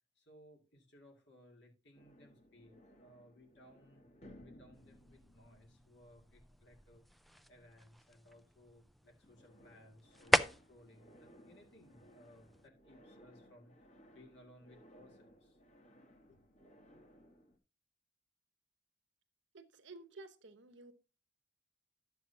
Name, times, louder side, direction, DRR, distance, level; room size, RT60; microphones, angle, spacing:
voice 1, 0.2-4.0 4.4-7.0 7.5-15.6 16.3-16.5, equal, 65° left, 2.0 m, -62 dB
sound 1, 1.9-8.9 9.2-17.6, equal, 40° left, 1.4 m, -62 dB
sound 2, 4.7-12.7, equal, ahead, 0.4 m, -40 dB
voice 2, 19.5-20.9, right 3 dB, 80° right, 1.0 m, -53 dB
11.5 x 7.8 x 2.7 m
head